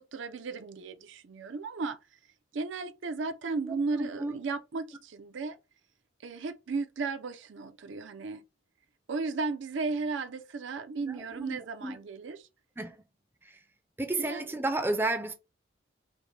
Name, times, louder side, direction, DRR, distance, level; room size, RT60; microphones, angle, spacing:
voice 1, 0.0-2.0 2.5-5.6 6.2-8.4 9.1-12.5 14.2-14.5, right 4 dB, 75° right, 0.5 m, -35 dB
voice 2, 3.6-4.3 11.0-12.0 12.8-13.0 14.0-15.3, right 2 dB, 10° right, 0.4 m, -32 dB
5.1 x 2.1 x 3.1 m
head